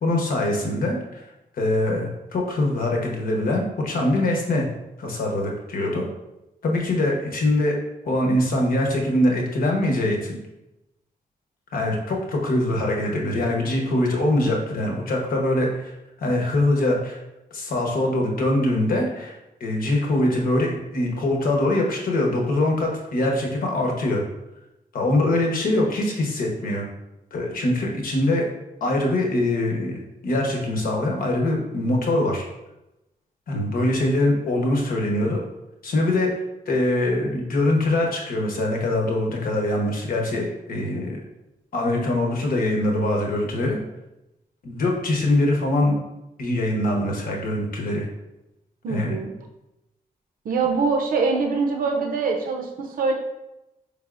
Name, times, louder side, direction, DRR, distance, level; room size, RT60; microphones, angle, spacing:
voice 1, 0.0-1.2 1.5-4.7 5.0-6.1 6.6-7.8 8.0-10.4 11.7-15.9 16.2-17.2 17.5-24.2 24.9-26.9 27.3-28.5 28.8-32.4 33.5-35.4 35.8-36.3 36.7-41.2 41.7-43.8 44.6-45.9 46.4-48.1 48.9-49.1, left 1 dB, 75° left, 0 dB, 1.0 m, -23 dB
voice 2, 48.8-49.3 50.4-53.1, right 4 dB, 70° right, 3 dB, 0.6 m, -23 dB
5.4 x 3.4 x 2.5 m, 0.93 s
wide cardioid pair, 155°, 15 cm